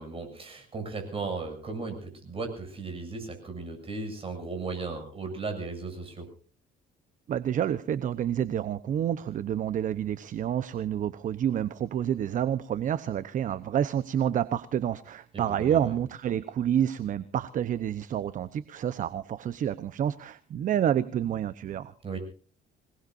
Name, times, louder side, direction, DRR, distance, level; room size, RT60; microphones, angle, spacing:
voice 1, 0.0-6.3 15.3-15.9 22.0-22.2, right 4 dB, 35° right, 6 dB, 7.3 m, -36 dB
voice 2, 7.3-21.9, right 10 dB, 50° right, 15 dB, 0.9 m, -29 dB
26.5 x 19.0 x 2.6 m, 0.39 s
cardioid pair, 110°, 17 cm